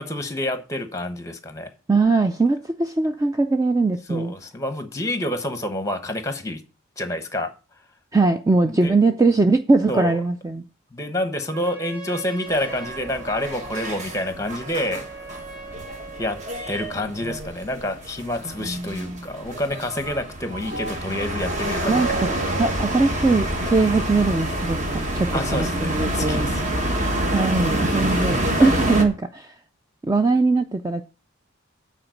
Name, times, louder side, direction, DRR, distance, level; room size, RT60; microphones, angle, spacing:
voice 1, 0.0-1.7 4.1-6.6 7.0-7.5 8.7-9.0 9.9-10.2 10.9-15.0 16.2-16.4 16.7-22.0 25.3-26.6 28.5-28.7, left 1 dB, 15° left, 1.0 m, -28 dB
voice 2, 1.9-4.3 8.1-10.6 18.4-19.3 21.8-22.3 22.6-26.5 27.3-29.5 30.0-31.0, right 3 dB, 15° right, 0.3 m, -21 dB
Trumpet, 11.4-16.9, right 3 dB, 55° right, 2.2 m, -40 dB
sound 1, 12.5-29.0, right 1 dB, 35° right, 1.3 m, -27 dB
8.9 x 4.3 x 6.4 m
head